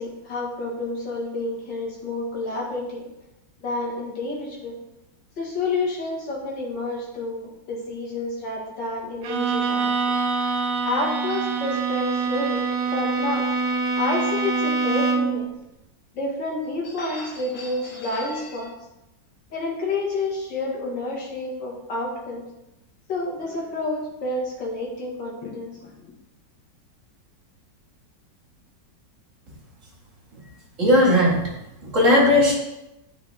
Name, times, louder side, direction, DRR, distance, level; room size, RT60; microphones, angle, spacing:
voice 1, 0.0-3.1 3.6-4.8 5.4-10.1 10.9-12.6 12.9-13.5 14.0-15.5 16.1-18.7 19.5-22.4 23.1-26.1, left 2 dB, 80° left, -3 dB, 2.5 m, -29 dB
Bowed string instrument, 9.2-15.4, right 4 dB, 75° right, 1.4 m, -24 dB
voice 2, 30.8-31.4 31.8-32.5, left 1 dB, 45° right, -3 dB, 2.3 m, -17 dB
9.8 x 5.5 x 3.5 m, 0.92 s
omnidirectional pair, 1.9 m